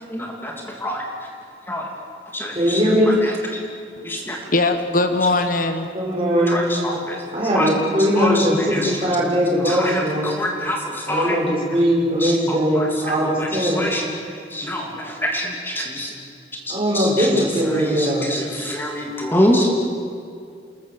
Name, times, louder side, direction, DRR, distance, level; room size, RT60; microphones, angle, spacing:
voice 1, 0.1-1.0 1.7-1.9 2.3-2.8 3.2-3.6 4.0-4.4 6.5-7.2 7.5-7.7 8.2-9.0 9.6-11.4 11.7-11.8 12.2-12.9 13.2-14.1 14.5-16.1 16.7-19.7, left 1 dB, 10° left, 0 dB, 2.7 m, -25 dB
voice 2, 2.5-3.2 5.9-6.7 7.3-10.3 11.1-13.8 16.7-18.3, equal, 30° right, -3 dB, 6.1 m, -20 dB
voice 3, 4.5-5.9, left 2 dB, 50° left, 8 dB, 1.3 m, -20 dB
28.0 x 21.0 x 7.3 m, 2.4 s
head